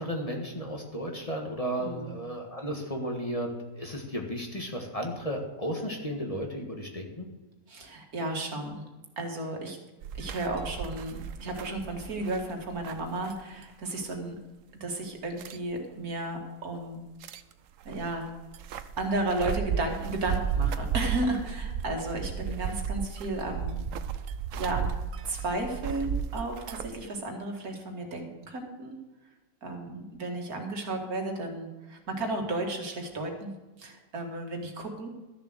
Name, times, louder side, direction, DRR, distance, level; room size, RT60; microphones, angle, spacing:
voice 1, 0.0-7.3, equal, 25° left, 1 dB, 1.6 m, -34 dB
voice 2, 1.8-2.1 7.7-8.8 9.2-9.8 10.1-14.4 14.8-17.0 17.8-18.3 19.0-23.8 24.6-24.9 25.3-29.0 29.6-33.5 33.8-35.1, right 2 dB, 85° right, 2 dB, 2.4 m, -33 dB
sound 1, 10.0-13.7 14.0-14.1 15.4-15.6 17.2-17.5 17.8-26.9, right 7 dB, 70° right, 1.0 m, -34 dB
13.0 x 7.0 x 6.6 m, 1.2 s
omnidirectional pair, 1.5 m